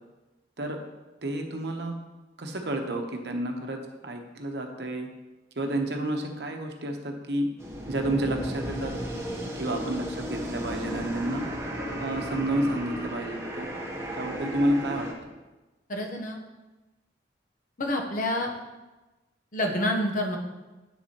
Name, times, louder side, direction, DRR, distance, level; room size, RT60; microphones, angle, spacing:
voice 1, 1.2-1.9 2.4-5.1 5.6-7.5 7.9-8.9 9.6-11.5 12.0-13.7 14.1-15.3, right 1 dB, 65° right, 3 dB, 0.9 m, -30 dB
sound 1, 7.6-15.1, equal, 15° right, 0.9 m, -34 dB
voice 2, 15.9-16.4 17.8-18.5 19.5-20.4, left 1 dB, 45° left, 2 dB, 0.9 m, -27 dB
8.1 x 7.3 x 2.9 m, 1.1 s
head